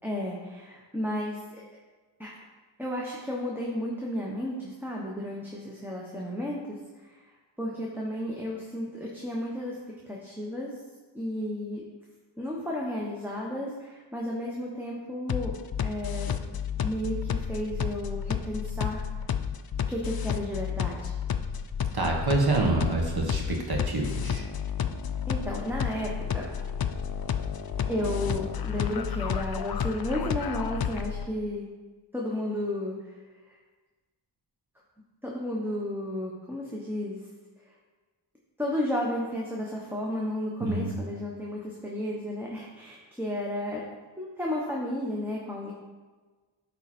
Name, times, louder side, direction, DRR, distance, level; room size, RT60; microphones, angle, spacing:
voice 1, 0.0-1.6 2.2-2.3 2.8-7.2 7.6-9.8 10.1-10.7 11.1-11.8 12.4-16.3 16.8-19.0 19.9-21.1 25.3-26.5 27.9-31.7 32.1-33.1 35.2-37.2 38.6-43.8 44.2-45.7, left 1 dB, 5° right, -3 dB, 1.2 m, -33 dB
sound 1, 15.3-31.3, left 8 dB, 50° left, 0.5 m, -31 dB
voice 2, 21.9-24.4 40.6-40.9, right 2 dB, 50° right, -1 dB, 1.6 m, -27 dB
10.5 x 4.0 x 4.4 m, 1.3 s
wide cardioid pair, 50°, 47 cm